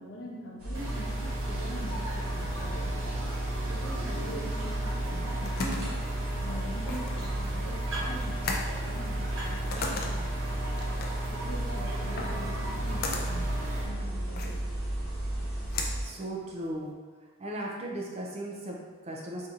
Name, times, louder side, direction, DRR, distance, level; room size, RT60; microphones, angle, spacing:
voice 1, 0.0-2.9 3.7-6.0 6.4-10.2 11.3-13.5 13.8-14.6, equal, 65° left, -4 dB, 0.8 m, -43 dB
sound 1, 0.6-16.0, right 1 dB, 85° right, 0.9 m, -33 dB
sound 2, 0.7-13.8, right 1 dB, 60° right, 0.7 m, -37 dB
sound 3, 5.3-16.9, left 3 dB, 45° left, 0.3 m, -39 dB
voice 2, 16.0-17.0 17.4-19.5, right 1 dB, 30° right, -1 dB, 0.3 m, -37 dB
4.1 x 2.7 x 2.4 m, 1.5 s
head